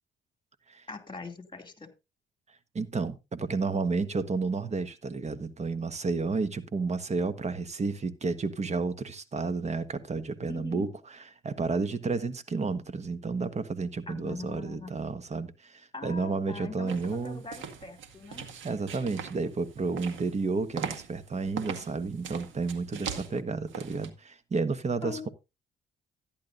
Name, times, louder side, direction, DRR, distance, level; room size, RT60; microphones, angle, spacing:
voice 1, 0.9-1.9 10.5-10.9 14.1-15.0 15.9-18.5 25.0-25.3, left 3 dB, 25° left, 2.6 m, -42 dB
voice 2, 2.7-17.4 18.6-25.3, right 4 dB, 35° right, 1.3 m, -31 dB
sound 1, 16.9-24.1, right 7 dB, 75° right, 1.8 m, -41 dB
14.0 x 10.5 x 2.6 m
cardioid pair, 90°, 20 cm